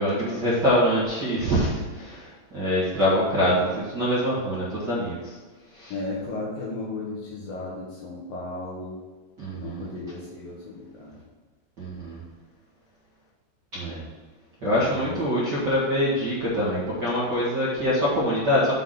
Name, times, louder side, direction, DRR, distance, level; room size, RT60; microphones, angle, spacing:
voice 1, 0.0-5.3 5.7-5.9 9.4-9.9 11.8-12.2 13.7-14.0 14.6-18.7, equal, 85° right, -10 dB, 0.9 m, -24 dB
voice 2, 5.9-9.0 9.6-11.2 14.7-15.2, left 2 dB, 65° left, -4 dB, 2.4 m, -35 dB
7.3 x 5.9 x 5.9 m, 1.3 s
omnidirectional pair, 5.6 m